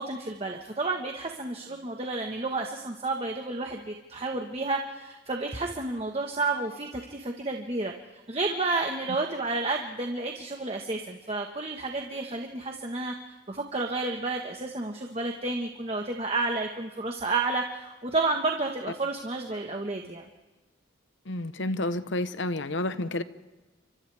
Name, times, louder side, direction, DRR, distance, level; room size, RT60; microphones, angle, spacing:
voice 1, 0.0-7.9 8.3-13.1 13.5-20.2, right 3 dB, 30° right, 2 dB, 1.4 m, -31 dB
voice 2, 21.3-23.2, left 1 dB, 70° left, 12 dB, 1.1 m, -30 dB
29.5 x 25.5 x 3.5 m, 1.2 s
head